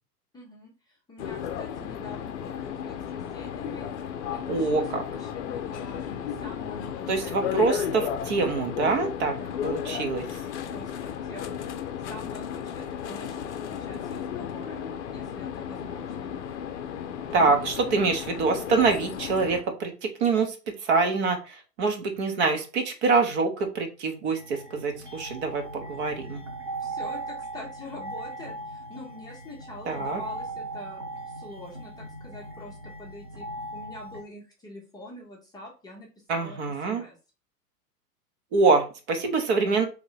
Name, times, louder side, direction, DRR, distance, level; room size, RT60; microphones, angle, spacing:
voice 1, 0.3-7.5 9.4-9.7 10.7-14.8 15.1-16.4 17.3-17.5 26.8-33.5 33.7-36.6 36.8-37.2, left 1 dB, 10° left, -3 dB, 0.8 m, -45 dB
sound 1, 1.2-19.6, left 8 dB, 45° left, 0.6 m, -34 dB
voice 2, 4.5-5.0 7.1-9.3 9.6-10.3 17.3-26.4 29.9-30.2 36.3-37.0 38.5-39.8, right 4 dB, 40° right, 4 dB, 1.1 m, -25 dB
sound 2, 24.3-34.2, right 2 dB, 20° right, 0.3 m, -38 dB
3.9 x 3.1 x 4.0 m, 0.33 s
figure-of-eight pair, 100°, 49 cm